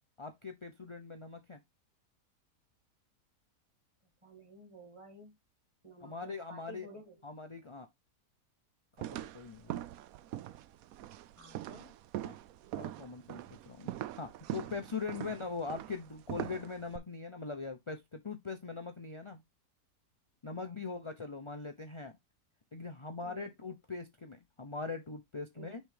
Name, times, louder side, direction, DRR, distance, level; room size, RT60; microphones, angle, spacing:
voice 1, 0.2-1.6 6.0-6.9 7.2-7.9 9.1-9.8 12.2-12.3 12.8-13.9 14.2-19.4 20.4-22.2 22.7-25.8, left 4 dB, 35° left, 0.5 m, -41 dB
voice 2, 4.2-5.4 5.8-7.2 11.4-11.9 20.6-20.8 23.2-23.5 25.6-25.7, right 1 dB, 20° right, 2.2 m, -53 dB
sound 1, 9.0-17.0, right 13 dB, 70° right, 0.9 m, -42 dB
6.5 x 3.9 x 4.9 m
omnidirectional pair, 1.8 m